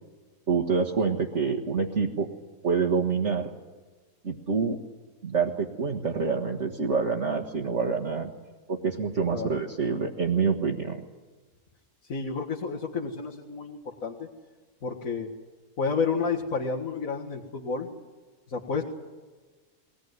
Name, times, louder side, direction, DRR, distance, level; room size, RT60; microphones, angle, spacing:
voice 1, 0.5-2.3 2.6-3.5 4.2-4.8 5.2-8.3 8.7-11.0, right 5 dB, 55° right, -1 dB, 1.8 m, -26 dB
voice 2, 12.1-14.3 14.8-15.3 15.8-17.9 18.5-18.8, left 5 dB, 70° left, -3 dB, 2.3 m, -30 dB
21.5 x 19.0 x 9.5 m, 1.3 s
omnidirectional pair, 1.5 m